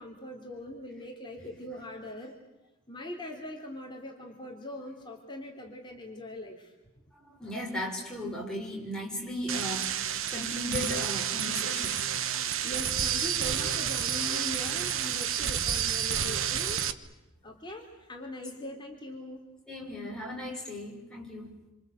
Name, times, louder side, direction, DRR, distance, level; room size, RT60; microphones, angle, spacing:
voice 1, 0.0-2.3 2.9-6.7 12.4-16.8 17.4-19.4, left 1 dB, 20° left, 1 dB, 3.1 m, -41 dB
voice 2, 7.1-12.0 19.7-21.5, left 1 dB, 5° left, -3 dB, 6.3 m, -37 dB
sound 1, 9.5-16.9, right 9 dB, 60° right, 1.2 m, -30 dB
27.0 x 26.5 x 8.0 m, 0.99 s
head